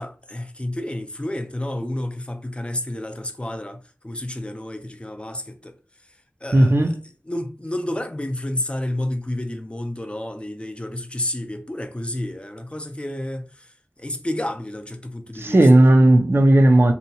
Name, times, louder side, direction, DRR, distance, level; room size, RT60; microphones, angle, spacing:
voice 1, 0.0-5.8 6.0-6.9 7.3-13.7 14.0-15.7, left 1 dB, 25° left, 0.4 m, -30 dB
voice 2, 6.5-7.0 15.3-16.9, right 1 dB, 50° right, 0.4 m, -14 dB
2.7 x 2.1 x 2.7 m
wide cardioid pair, 45°, 5 cm